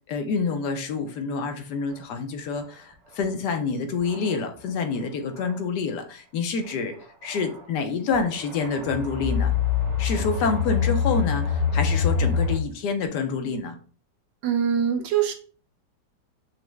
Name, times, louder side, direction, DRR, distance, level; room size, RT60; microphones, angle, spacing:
voice 1, 0.1-7.0 7.2-9.5 10.0-13.8, left 4 dB, 70° left, 6 dB, 1.2 m, -27 dB
sound 1, 3.2-3.3 4.0-4.3 5.4-5.5 7.3-7.6 8.1-12.6, left 6 dB, 25° right, 1.1 m, -25 dB
voice 2, 14.4-15.3, right 8 dB, 80° right, 6 dB, 1.3 m, -23 dB
5.8 x 2.1 x 3.1 m, 0.42 s
omnidirectional pair, 1.9 m